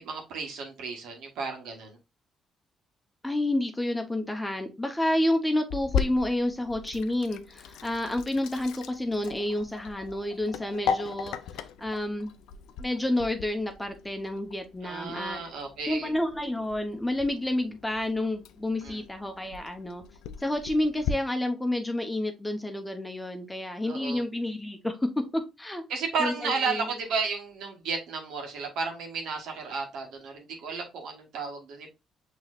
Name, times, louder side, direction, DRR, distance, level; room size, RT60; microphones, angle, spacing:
voice 1, 0.0-2.0 14.8-16.1 18.8-19.0 23.8-24.2 25.9-31.9, right 4 dB, 85° right, 2 dB, 1.3 m, -33 dB
voice 2, 3.2-12.4 12.8-15.4 15.9-20.0 20.4-25.8 26.2-26.9, left 1 dB, 10° left, 6 dB, 0.9 m, -29 dB
Sink (filling or washing), 5.7-21.1, left 7 dB, 90° left, 0.4 m, -37 dB
6.2 x 3.1 x 2.4 m, 0.26 s
cardioid pair, 85°, 0 cm